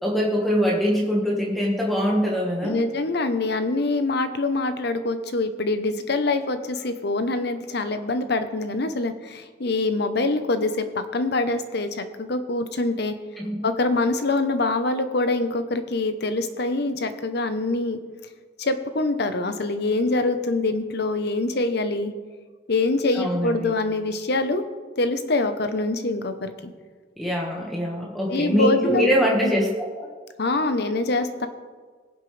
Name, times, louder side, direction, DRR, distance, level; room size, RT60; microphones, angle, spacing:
voice 1, 0.0-2.8 13.4-13.5 23.1-23.7 27.2-29.7 30.0-30.1, equal, ahead, -4 dB, 1.6 m, -23 dB
voice 2, 2.6-13.1 13.6-18.0 18.6-22.1 22.7-24.6 25.0-26.7 28.3-29.1 29.4-29.5 30.4-31.5, left 2 dB, 60° left, 9 dB, 0.9 m, -24 dB
22.0 x 7.5 x 3.4 m, 1.5 s
head